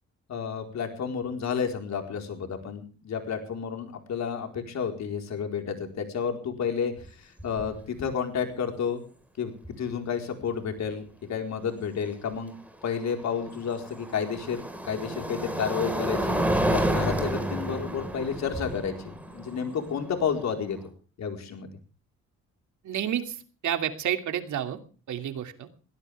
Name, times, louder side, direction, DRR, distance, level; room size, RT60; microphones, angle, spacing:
voice 1, 0.3-6.9 7.2-9.0 9.4-9.5 9.8-12.5 12.8-16.4 16.7-20.8 21.2-21.7, left 7 dB, 65° left, 4 dB, 4.6 m, -31 dB
sound 1, 7.0-7.1 7.4-7.8 9.6-9.7 12.7-20.8, right 1 dB, 5° right, 4.7 m, -30 dB
voice 2, 22.8-23.4 23.6-24.8 25.1-25.7, right 10 dB, 70° right, 7 dB, 2.7 m, -29 dB
21.5 x 17.0 x 3.6 m, 0.38 s
cardioid pair, 90°, 30 cm